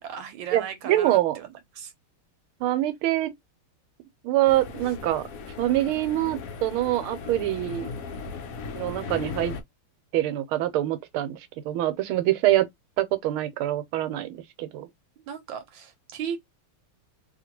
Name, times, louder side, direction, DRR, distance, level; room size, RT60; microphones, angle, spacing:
voice 1, 0.0-1.9 4.8-4.9 15.2-16.4, right 8 dB, 75° right, 1.3 m, -37 dB
voice 2, 0.5-1.4 2.6-3.3 4.2-5.2 5.6-7.9 8.7-9.5 10.1-11.4 11.6-12.7 13.0-14.9, right 14 dB, 90° right, 1.5 m, -25 dB
sound 1, 4.5-9.6, left 5 dB, 80° left, 0.7 m, -37 dB
2.9 x 2.8 x 2.9 m
omnidirectional pair, 2.3 m